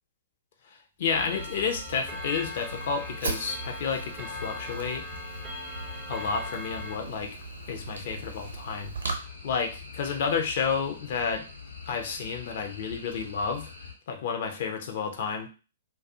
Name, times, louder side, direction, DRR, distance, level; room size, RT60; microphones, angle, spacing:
voice 1, 0.6-5.0 6.1-7.4 7.7-8.9 9.2-11.5 11.9-13.7 14.1-15.5, left 6 dB, 50° left, 4 dB, 0.5 m, -31 dB
sound 1, 1.1-13.9, left 5 dB, 75° left, 0.9 m, -45 dB
Clock, 1.1-7.0, left 1 dB, 15° right, 0.4 m, -41 dB
Fire, 1.4-9.1, right 4 dB, 70° right, 0.7 m, -39 dB
2.3 x 2.3 x 2.7 m, 0.34 s
figure-of-eight pair, 115°, 0 cm